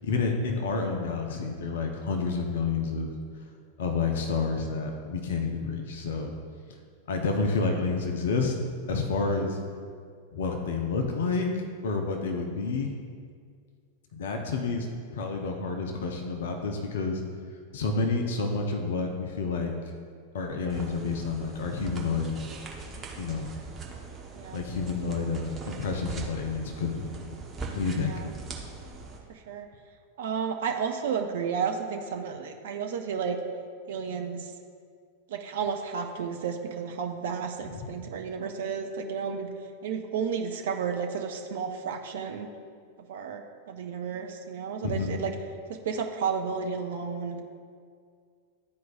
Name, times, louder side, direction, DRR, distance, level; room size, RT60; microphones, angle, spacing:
voice 1, 0.0-3.1 3.8-6.3 7.1-8.6 8.9-9.6 10.3-11.5 11.8-12.9 14.1-14.9 15.1-17.2 17.7-19.7 20.3-22.4 23.2-23.5 24.5-27.2 27.8-28.2 37.8-37.9 44.8-45.1, left 4 dB, 60° left, 3 dB, 0.7 m, -29 dB
sound 1, 20.7-29.2, right 4 dB, 20° right, 0.9 m, -41 dB
voice 2, 28.0-28.3 29.3-29.7 30.2-33.4 33.9-34.5 35.3-39.5 39.8-42.5 43.1-45.3 45.7-47.4, right 6 dB, 55° right, 4 dB, 0.5 m, -32 dB
11.5 x 4.6 x 2.4 m, 2.1 s
figure-of-eight pair, 90°, 0 cm